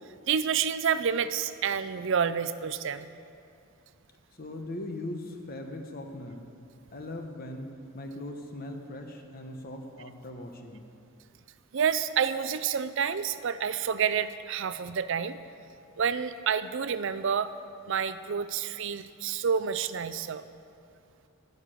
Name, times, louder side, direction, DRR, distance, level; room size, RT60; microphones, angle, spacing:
voice 1, 0.3-3.1 11.7-15.4 16.0-17.5 17.9-20.4, right 7 dB, 60° right, 13 dB, 0.5 m, -29 dB
voice 2, 4.3-6.5 6.9-10.8, left 1 dB, 45° left, 4 dB, 1.1 m, -40 dB
11.5 x 6.6 x 9.0 m, 2.5 s
head